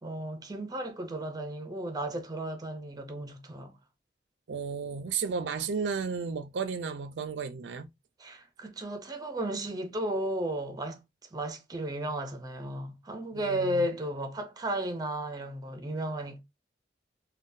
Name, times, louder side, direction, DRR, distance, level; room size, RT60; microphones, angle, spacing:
voice 1, 0.0-3.8 8.2-11.0 11.3-16.4, right 1 dB, 20° right, 0.5 m, -34 dB
voice 2, 4.5-7.9 13.3-13.9, right 5 dB, 85° right, 0.4 m, -33 dB
3.7 x 2.2 x 2.5 m
head